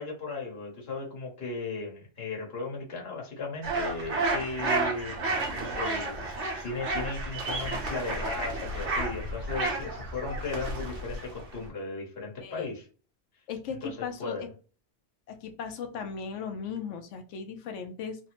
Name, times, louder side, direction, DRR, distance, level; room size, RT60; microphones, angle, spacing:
voice 1, 0.0-12.9 13.8-14.5, left 3 dB, 60° left, -1 dB, 1.3 m, -36 dB
sound 1, 3.6-11.7, right 2 dB, 70° right, 1.2 m, -31 dB
voice 2, 12.4-12.7 13.5-14.5 15.3-18.2, left 6 dB, 80° left, 7 dB, 0.9 m, -37 dB
3.2 x 2.0 x 2.9 m, 0.37 s
omnidirectional pair, 1.2 m